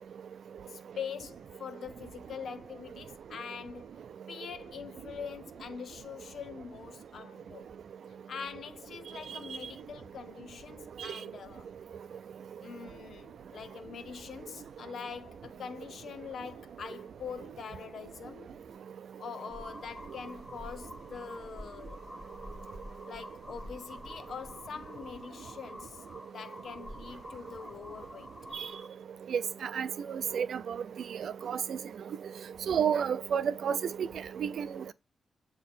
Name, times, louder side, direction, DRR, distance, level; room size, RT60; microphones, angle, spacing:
voice 1, 0.6-3.9 4.3-7.7 8.3-11.7 12.6-18.5 19.2-22.0 23.0-26.0 26.3-28.3, left 6 dB, 75° left, 0.9 m, -44 dB
sound 1, 19.5-28.9, left 1 dB, 15° left, 2.6 m, -47 dB
voice 2, 32.7-33.8 34.4-34.7, right 7 dB, 75° right, 0.4 m, -28 dB
8.3 x 3.0 x 4.3 m
cardioid pair, 100°, 0 cm